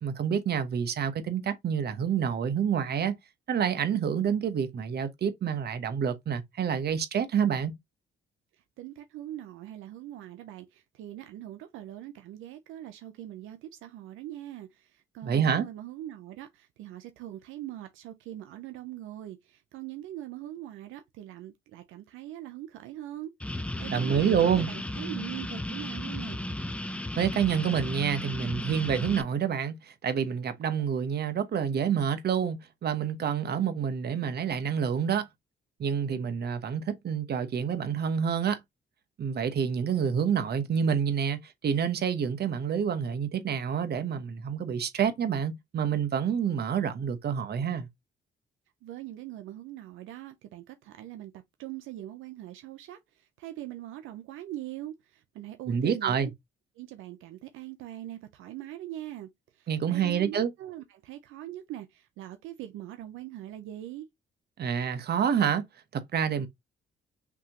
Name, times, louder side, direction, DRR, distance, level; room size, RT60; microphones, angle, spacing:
voice 1, 0.0-3.2 3.5-7.7 15.2-15.7 23.9-24.7 27.2-35.3 35.8-38.6 39.2-47.9 55.7-56.3 59.7-60.5 64.6-65.6 65.9-66.5, right 7 dB, 55° right, 1.1 m, -28 dB
voice 2, 8.8-26.4 48.8-56.3 56.8-64.1, right 13 dB, 90° right, 0.7 m, -42 dB
sound 1, 23.4-29.2, left 1 dB, 5° left, 0.6 m, -35 dB
5.8 x 2.9 x 2.9 m
cardioid pair, 90°, 20 cm